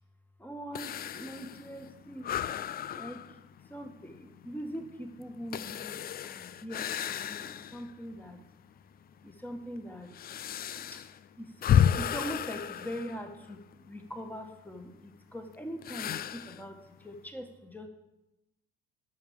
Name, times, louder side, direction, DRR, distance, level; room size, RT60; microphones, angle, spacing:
voice 1, 0.4-2.3 2.9-3.2 3.7-8.4 9.2-10.1 10.7-11.1 11.4-13.6 13.9-17.9, equal, 5° left, 5 dB, 1.8 m, -42 dB
sound 1, 0.7-7.9 8.4-8.5 9.2-13.8 15.8-16.6, left 9 dB, 30° left, 0.4 m, -32 dB
10.5 x 6.2 x 6.8 m, 0.93 s
figure-of-eight pair, 55°, 30 cm